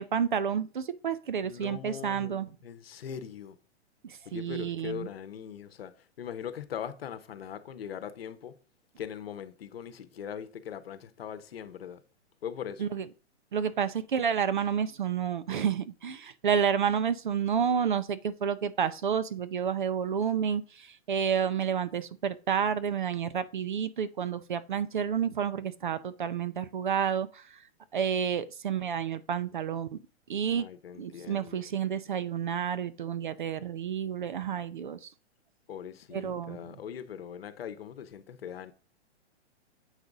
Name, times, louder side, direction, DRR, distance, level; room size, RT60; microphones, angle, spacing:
voice 1, 0.0-2.5 4.0-5.1 12.8-13.0 13.5-27.7 27.9-30.0 30.3-30.7 30.9-35.1 36.1-36.7, right 7 dB, 45° right, 0.5 m, -30 dB
voice 2, 1.4-3.6 4.2-8.6 9.0-12.0 12.4-12.8 30.5-31.6 35.7-38.7, left 8 dB, 55° left, 1.0 m, -41 dB
8.0 x 4.9 x 4.0 m
hypercardioid pair, 175°, 35 cm